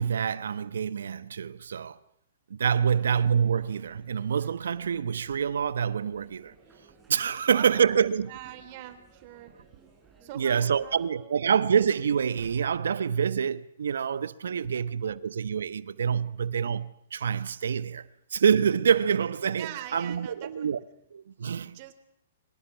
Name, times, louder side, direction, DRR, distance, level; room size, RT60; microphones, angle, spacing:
voice 1, 0.0-2.0 2.5-6.5 7.1-8.3 10.3-20.8 21.1-21.8, right 7 dB, 75° right, 1.1 m, -26 dB
sound 1, 2.8-11.1, right 4 dB, 15° right, 7.5 m, -58 dB
voice 2, 7.5-11.4 14.6-14.9 19.5-20.7 21.7-21.9, right 12 dB, 45° right, 3.4 m, -45 dB
29.5 x 25.5 x 6.0 m
hypercardioid pair, 125°, 0 cm